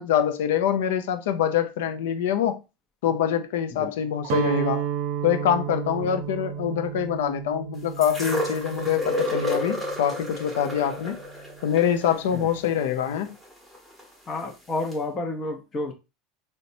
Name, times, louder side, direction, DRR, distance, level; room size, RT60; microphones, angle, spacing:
voice 1, 0.0-2.6 3.0-4.9 5.2-11.2 11.6-13.4, left 9 dB, 90° left, 0.4 m, -25 dB
Guitar, 4.2-10.3, right 10 dB, 65° right, 0.6 m, -32 dB
sound 1, 8.0-14.1 14.9-15.0, left 1 dB, ahead, 0.9 m, -31 dB
voice 2, 14.3-15.9, left 2 dB, 25° left, 0.6 m, -30 dB
4.0 x 2.1 x 2.7 m
supercardioid pair, 135°, 0 cm